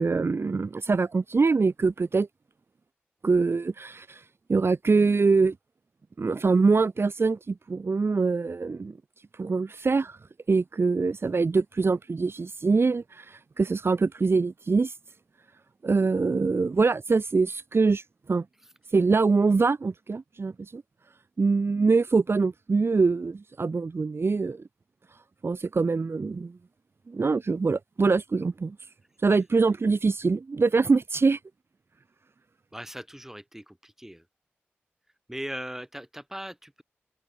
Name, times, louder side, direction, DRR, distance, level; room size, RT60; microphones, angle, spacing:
voice 1, 0.0-2.3 3.2-4.2 4.5-5.5 6.2-9.0 9.4-10.2 10.5-14.9 15.8-18.0 18.3-18.4 18.9-20.8 21.4-24.6 25.4-26.5 27.1-28.7 29.2-31.4, right 4 dB, 65° right, 1.5 m, -24 dB
voice 2, 32.7-34.3 35.3-36.8, equal, 10° right, 7.1 m, -39 dB
cardioid pair, 45°, 4 cm